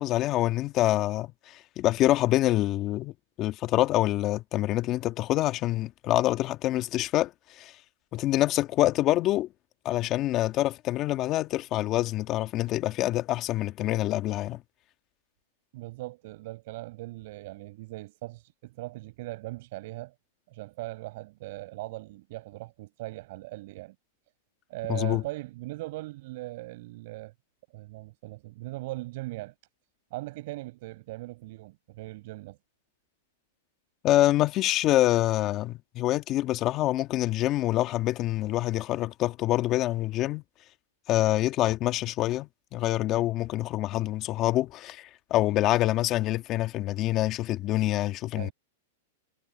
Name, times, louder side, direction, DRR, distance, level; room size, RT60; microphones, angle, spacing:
voice 1, 0.0-3.1 3.4-7.3 7.6-7.7 8.1-9.5 9.8-14.6 24.9-25.2 34.0-40.4 41.1-48.5, left 15 dB, 35° left, 1.7 m, -26 dB
voice 2, 15.7-20.1 20.5-24.0 24.7-27.3 27.7-29.5 30.1-32.6 48.4-48.5, right 20 dB, 55° right, 5.2 m, -39 dB
hypercardioid pair, 135°, 0 cm